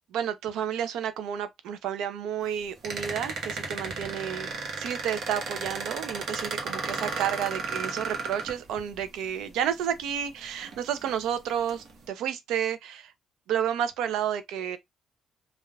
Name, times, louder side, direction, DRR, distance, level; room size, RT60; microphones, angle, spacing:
voice 1, 0.1-13.1 13.5-14.8, right 9 dB, 90° right, 0.5 m, -31 dB
sound 1, 2.8-9.0 10.0-10.1 10.6-11.1 11.7-11.9, right 4 dB, 65° right, 1.0 m, -34 dB
3.2 x 2.4 x 2.2 m
cardioid pair, 90°, 0 cm